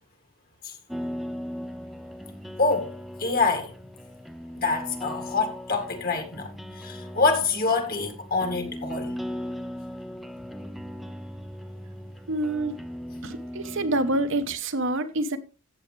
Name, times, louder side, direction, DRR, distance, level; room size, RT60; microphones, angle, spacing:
sound 1, 0.9-14.6, equal, ahead, 0.6 m, -38 dB
voice 1, 2.6-2.9 3.2-3.7 4.6-9.2, left 3 dB, 40° left, 2.0 m, -26 dB
voice 2, 12.3-12.8 13.2-15.4, right 2 dB, 60° right, 1.0 m, -27 dB
14.0 x 8.0 x 3.3 m
head